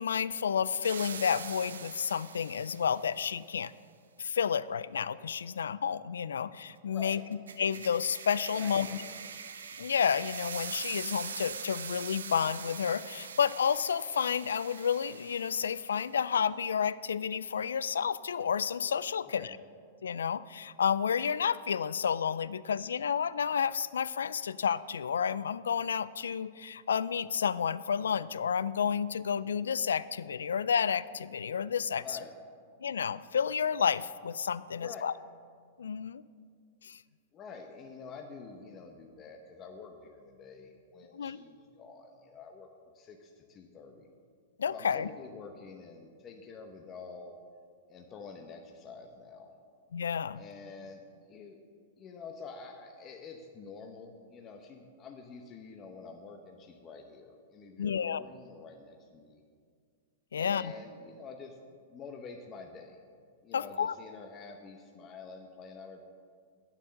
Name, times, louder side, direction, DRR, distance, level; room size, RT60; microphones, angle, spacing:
voice 1, 0.0-3.7 4.2-7.2 7.6-8.9 9.8-19.6 20.0-32.0 32.8-35.1 35.8-36.2 36.8-37.0 41.1-41.4 44.6-45.1 49.9-50.4 57.8-58.2 60.3-60.7 63.5-64.0, left 7 dB, 90° left, 18 dB, 0.3 m, -30 dB
sound 1, 0.8-3.2 7.1-16.0, right 6 dB, 90° right, 0.7 m, -43 dB
voice 2, 6.9-7.2 8.5-9.2 19.2-19.6 31.9-32.3 34.8-35.1 37.3-42.7 42.9-44.1 44.7-47.4 47.9-49.5 50.3-51.6 52.0-59.4 60.3-61.6 61.9-63.0 63.4-66.0, left 4 dB, 30° left, 3 dB, 0.9 m, -48 dB
9.3 x 7.3 x 6.4 m, 2.1 s
hypercardioid pair, 125°, 0 cm